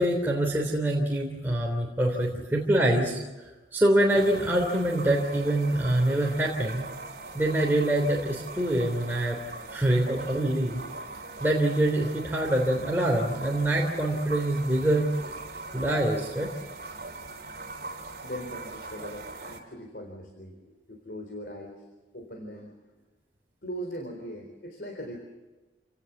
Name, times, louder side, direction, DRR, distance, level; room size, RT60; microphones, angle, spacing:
voice 1, 0.0-3.2 3.7-6.9 7.3-9.4 9.7-10.8 11.4-15.1 15.7-16.5, right 1 dB, 10° right, -2 dB, 3.3 m, -25 dB
sound 1, 4.1-19.6, right 3 dB, 50° right, 3.3 m, -41 dB
voice 2, 18.2-21.8 22.1-22.7 23.6-25.2, equal, 55° left, 2 dB, 3.9 m, -40 dB
28.5 x 18.0 x 7.2 m, 1.2 s
head